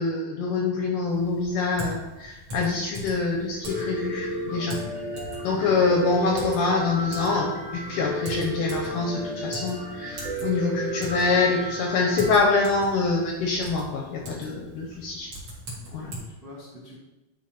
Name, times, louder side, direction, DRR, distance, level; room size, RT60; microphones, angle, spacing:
voice 1, 0.0-4.8 5.4-15.3 15.9-16.1, left 4 dB, 80° left, 0 dB, 1.9 m, -25 dB
Typing, 1.1-16.2, right 1 dB, 45° right, 1.9 m, -42 dB
Piano, 3.6-12.4, right 1 dB, 30° right, 1.0 m, -33 dB
voice 2, 15.7-16.9, left 1 dB, 75° right, -8 dB, 0.5 m, -47 dB
10.0 x 3.5 x 2.9 m, 1.1 s
omnidirectional pair, 4.2 m